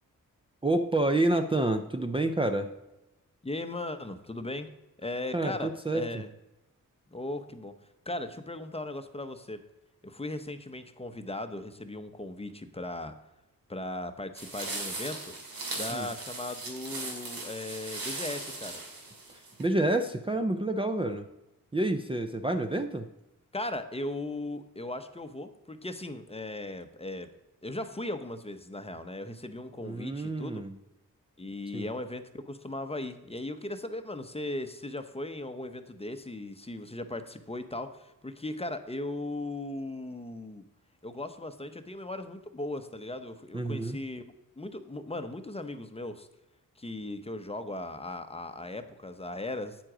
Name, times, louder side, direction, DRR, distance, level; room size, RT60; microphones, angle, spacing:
voice 1, 0.6-2.7 5.3-6.0 15.9-16.1 19.3-21.3 21.7-23.1 29.8-30.7 31.7-31.9 43.5-44.0, right 2 dB, 15° right, 6 dB, 0.5 m, -28 dB
voice 2, 3.4-4.7 5.0-6.3 7.1-7.7 8.1-9.6 10.0-13.2 13.7-15.3 15.7-18.8 23.5-27.3 27.6-30.6 31.4-40.7 41.0-44.2 44.6-46.3 46.8-49.8, left 2 dB, 15° left, 8 dB, 0.8 m, -37 dB
sound 1, 14.4-19.6, right 2 dB, 90° right, 2.4 m, -38 dB
9.0 x 7.5 x 4.9 m, 0.97 s
wide cardioid pair, 90°, 34 cm